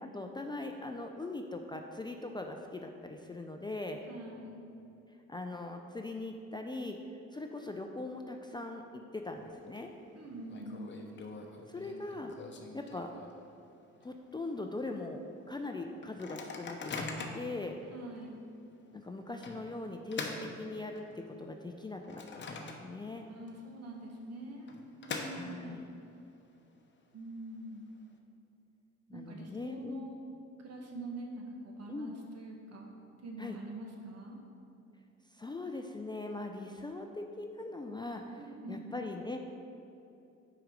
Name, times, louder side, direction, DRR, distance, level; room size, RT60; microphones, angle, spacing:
voice 1, 0.0-4.0 5.3-7.0 7.3-9.9 11.7-12.3 12.7-13.1 14.0-17.1 17.3-17.8 18.9-23.3 25.3-25.8 29.1-30.1 31.9-32.1 33.4-33.6 35.3-38.4 38.7-39.4, left 2 dB, 15° left, 3 dB, 0.4 m, -41 dB
voice 2, 4.1-4.6 10.1-10.9 17.9-18.4 23.3-24.7 25.0-25.8 27.1-27.8 29.1-30.1 30.6-32.9 33.2-34.4 38.4-38.9, right 2 dB, 55° right, 0 dB, 1.3 m, -45 dB
Microwave oven, 9.3-9.8 10.1-10.2 10.5-13.6 14.0-14.1 14.4-14.7 15.2-15.3 16.0-17.6 18.2-18.3 19.4-21.3 21.7-23.2 23.5-23.6 24.4-25.9, left 3 dB, 40° left, 0.8 m, -43 dB
6.2 x 4.9 x 5.1 m, 2.8 s
cardioid pair, 90°, 30 cm